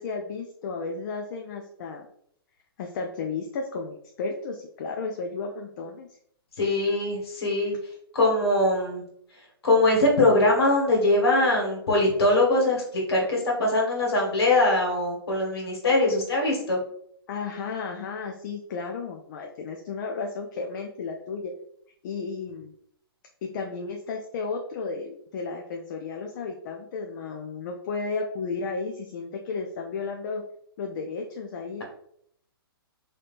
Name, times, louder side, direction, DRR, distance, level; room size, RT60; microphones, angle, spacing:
voice 1, 0.0-2.1 2.8-6.1 17.3-21.5 22.0-22.7 23.4-30.4 30.8-31.8, left 4 dB, 50° left, 2 dB, 0.4 m, -33 dB
voice 2, 6.6-7.8 8.1-9.0 9.6-16.8, left 2 dB, 80° left, -1 dB, 1.4 m, -22 dB
3.3 x 2.8 x 2.5 m, 0.68 s
hypercardioid pair, 135°, 13 cm